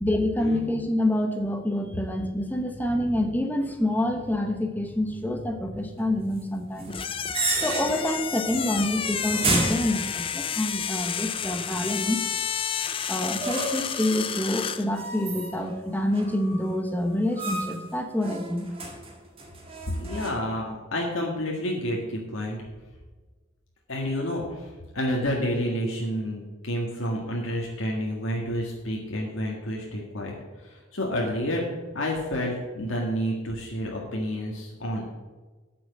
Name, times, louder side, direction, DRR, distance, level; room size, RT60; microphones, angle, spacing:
voice 1, 0.0-7.0 7.6-12.2 13.1-18.7, left 1 dB, 10° left, 5 dB, 1.0 m, -27 dB
sound 1, 6.8-8.2 8.5-8.9 9.3-10.5 13.4-14.0 14.9-15.8 16.1-16.7 17.4-17.9 18.2-20.3, right 2 dB, 30° right, 1.8 m, -31 dB
sound 2, 6.9-14.9, left 8 dB, 25° left, 0.4 m, -31 dB
voice 2, 19.9-22.6 23.9-31.7 31.9-35.1, equal, 80° left, -2 dB, 1.7 m, -29 dB
8.9 x 6.3 x 7.7 m, 1.3 s
head